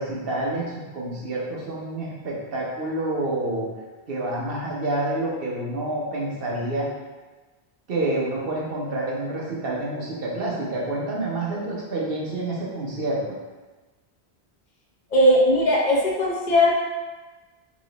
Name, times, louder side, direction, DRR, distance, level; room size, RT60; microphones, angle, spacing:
voice 1, 0.0-3.7 4.1-6.9 7.9-13.2, right 2 dB, 60° right, -4 dB, 1.0 m, -28 dB
voice 2, 15.1-16.8, equal, 45° left, -5 dB, 0.9 m, -18 dB
3.0 x 3.0 x 3.8 m, 1.3 s
omnidirectional pair, 1.1 m